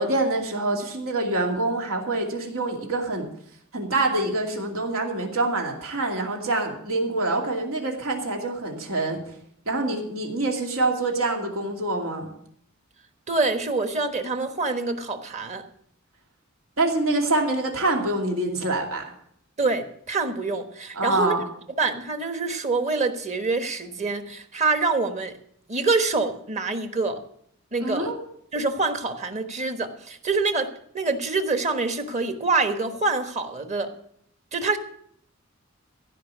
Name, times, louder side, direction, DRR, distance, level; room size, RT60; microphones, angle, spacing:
voice 1, 0.0-3.3 3.7-9.2 9.7-12.3 16.8-19.1 20.9-21.4 27.8-28.1, right 2 dB, 85° right, 2 dB, 2.6 m, -25 dB
voice 2, 13.3-15.6 19.6-21.4 21.8-25.3 25.7-27.2 27.7-28.1 28.5-33.9 34.5-34.8, right 3 dB, 35° right, 7 dB, 1.3 m, -26 dB
16.0 x 5.3 x 8.3 m, 0.66 s
head